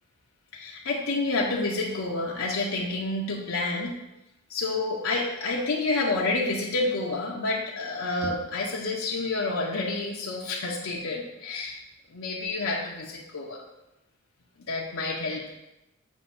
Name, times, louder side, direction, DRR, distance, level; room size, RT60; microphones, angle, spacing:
voice 1, 0.5-4.0 4.5-11.8 12.1-13.6 14.7-15.5, left 2 dB, 75° left, -3 dB, 0.7 m, -29 dB
7.2 x 2.5 x 5.5 m, 0.96 s
head